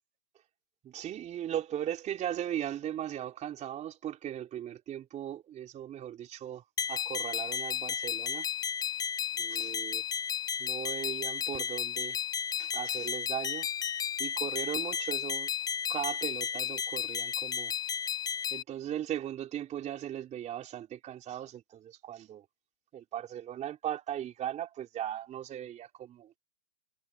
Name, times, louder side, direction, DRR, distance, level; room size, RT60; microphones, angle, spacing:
voice 1, 0.8-8.5 9.4-10.0 10.6-12.2 12.6-13.7 14.2-15.5 15.9-17.7 18.5-22.4 22.9-26.4, right 11 dB, 20° right, 3.6 m, -38 dB
sound 1, 6.8-18.6, left 8 dB, 10° left, 0.8 m, -33 dB
hypercardioid pair, 130°, 37 cm